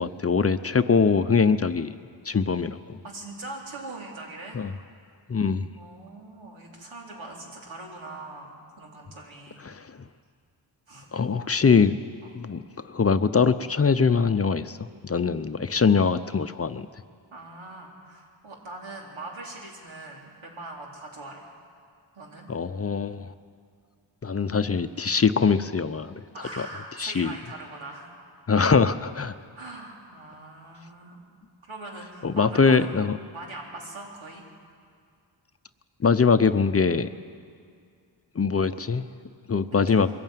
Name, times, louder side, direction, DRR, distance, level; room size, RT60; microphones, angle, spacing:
voice 1, 0.0-2.0 2.2-3.0 4.5-4.7 5.3-5.7 9.6-10.0 11.1-12.0 12.3-14.8 15.0-16.9 22.5-23.3 24.2-26.2 26.5-26.7 27.0-27.3 28.5-29.3 32.2-33.2 36.0-37.1 38.3-39.1 39.5-40.1, left 5 dB, 30° left, 10 dB, 0.7 m, -22 dB
voice 2, 3.0-4.6 5.7-9.7 10.9-11.1 12.2-12.3 17.3-21.5 22.1-22.5 26.3-28.1 29.6-31.2 31.6-32.9 33.3-34.4 39.7-39.8, right 2 dB, 90° right, -2 dB, 4.1 m, -41 dB
22.5 x 14.5 x 9.2 m, 2.2 s
wide cardioid pair, 95°, 46 cm